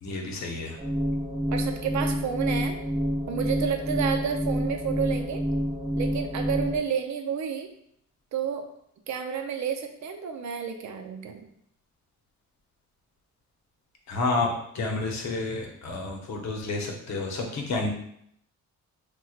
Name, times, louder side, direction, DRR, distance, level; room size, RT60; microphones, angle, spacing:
voice 1, 0.0-0.8 14.1-17.9, left 3 dB, 65° left, 1 dB, 0.8 m, -30 dB
sound 1, 0.8-6.8, equal, 20° right, 0.7 m, -28 dB
voice 2, 1.5-2.8 3.3-5.4 5.9-7.7 8.3-8.6 9.1-11.5, right 7 dB, 70° right, 5 dB, 0.5 m, -30 dB
4.4 x 2.2 x 2.3 m, 0.72 s
cardioid pair, 110°, 29 cm